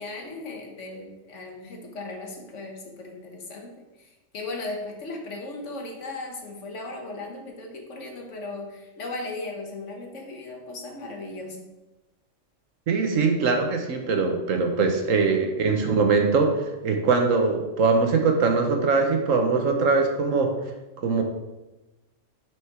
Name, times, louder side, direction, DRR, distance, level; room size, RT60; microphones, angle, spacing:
voice 1, 0.0-11.6, left 2 dB, 70° left, 2 dB, 1.6 m, -37 dB
voice 2, 12.9-20.5 21.0-21.2, right 4 dB, 85° right, 4 dB, 1.4 m, -22 dB
6.5 x 5.1 x 4.6 m, 1.0 s
omnidirectional pair, 1.3 m